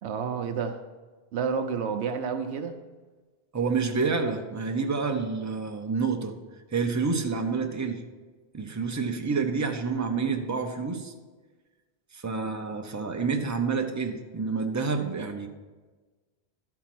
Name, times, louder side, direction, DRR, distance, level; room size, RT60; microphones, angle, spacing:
voice 1, 0.0-0.8 1.3-2.8, right 6 dB, 75° right, 7 dB, 0.9 m, -30 dB
voice 2, 3.5-6.3 6.7-8.0 8.5-11.1 12.1-15.5, right 4 dB, 20° right, 4 dB, 0.6 m, -28 dB
11.5 x 4.6 x 6.0 m, 1.3 s
omnidirectional pair, 1.1 m